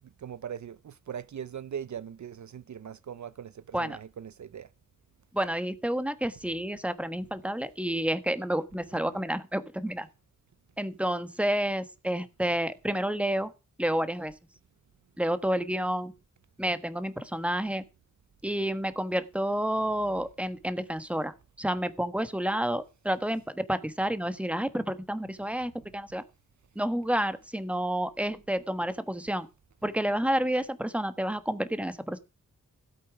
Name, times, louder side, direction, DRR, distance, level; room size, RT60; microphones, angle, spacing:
voice 1, 0.2-4.7, right 8 dB, 60° right, 0.5 m, -40 dB
voice 2, 5.3-10.1 10.8-13.5 13.8-14.3 15.2-16.1 16.6-17.8 18.4-26.2 26.7-29.5 29.8-32.2, right 1 dB, 5° right, 1.3 m, -30 dB
16.5 x 8.5 x 4.8 m
wide cardioid pair, 95°, 32 cm